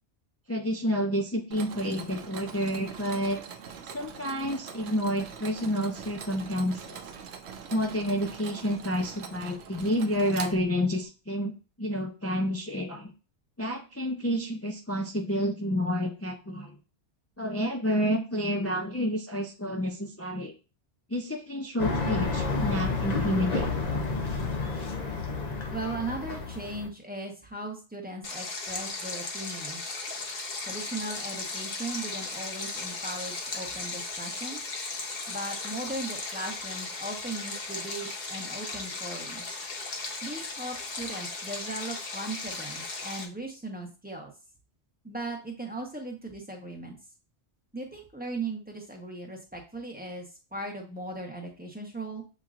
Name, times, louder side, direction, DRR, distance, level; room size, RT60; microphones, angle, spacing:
voice 1, 0.5-3.4 3.9-7.0 7.7-11.5 11.8-13.1 13.6-16.8 17.4-20.5 21.1-23.7, equal, 25° left, 2 dB, 0.3 m, -29 dB
Mechanisms, 1.5-11.1, right 6 dB, 75° right, 0.9 m, -43 dB
sound 1, 21.8-26.9, left 4 dB, 45° left, 0.7 m, -30 dB
voice 2, 25.7-30.0 30.7-34.6 35.3-39.5 40.2-44.3 45.0-47.0 47.7-52.2, right 2 dB, 10° right, 0 dB, 1.0 m, -38 dB
Stream, 28.2-43.2, left 3 dB, 60° left, 1.1 m, -36 dB
7.4 x 2.8 x 2.4 m, 0.33 s
omnidirectional pair, 1.1 m